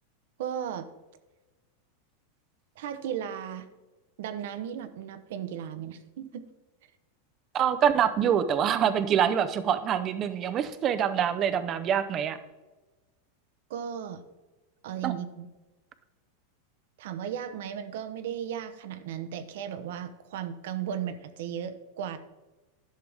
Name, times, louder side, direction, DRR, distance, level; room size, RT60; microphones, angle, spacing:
voice 1, 0.4-0.9 2.8-3.7 4.2-6.5 13.7-14.2 14.8-15.5 17.0-22.2, right 9 dB, 70° right, 11 dB, 0.8 m, -35 dB
voice 2, 7.5-12.4 15.0-15.1, right 8 dB, 30° right, 11 dB, 0.7 m, -25 dB
11.5 x 6.8 x 3.5 m, 1.1 s
supercardioid pair, 150°, 0 cm